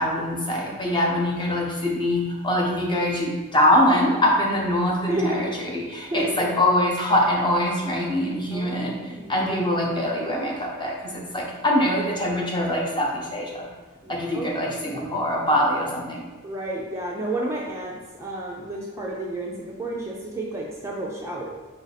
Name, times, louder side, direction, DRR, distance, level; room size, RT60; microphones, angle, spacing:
voice 1, 0.0-13.7 14.1-16.2, left 1 dB, 20° left, -1 dB, 0.7 m, -23 dB
voice 2, 5.1-5.5 6.1-6.6 8.5-9.5 14.0-14.5 14.8-15.0 16.4-21.5, right 1 dB, 15° right, -3 dB, 0.4 m, -31 dB
5.0 x 2.5 x 4.1 m, 1.3 s
head